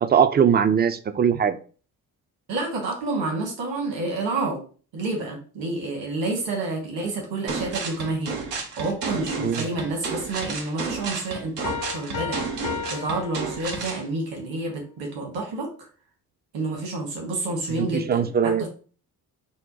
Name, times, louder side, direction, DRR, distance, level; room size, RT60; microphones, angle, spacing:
voice 1, 0.0-1.6 9.4-9.6 17.7-18.7, right 7 dB, 25° right, 11 dB, 0.4 m, -21 dB
voice 2, 2.5-4.6 4.9-8.4 8.8-12.4 12.9-15.7 16.5-18.7, right 2 dB, 70° right, 0 dB, 1.5 m, -29 dB
sound 1, 7.5-14.0, right 4 dB, 90° right, 0.7 m, -31 dB
Piano, 11.6-14.1, left 7 dB, 50° left, 0.6 m, -34 dB
3.7 x 2.2 x 3.9 m, 0.39 s
hypercardioid pair, 40°, 45 cm